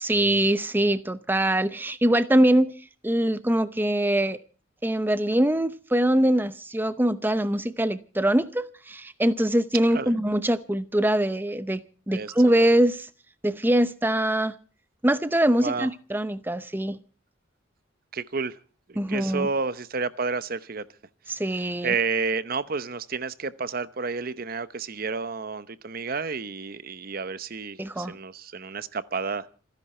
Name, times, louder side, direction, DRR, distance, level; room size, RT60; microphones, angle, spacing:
voice 1, 0.0-2.7 3.0-4.4 4.8-11.8 12.1-13.1 13.4-14.5 15.0-17.0 19.0-19.5 21.3-21.9 27.8-28.1, right 1 dB, 10° right, 0.7 m, -23 dB
voice 2, 18.1-18.5 19.1-20.8 21.8-29.5, right 4 dB, 45° right, 0.8 m, -30 dB
27.5 x 10.5 x 4.3 m
head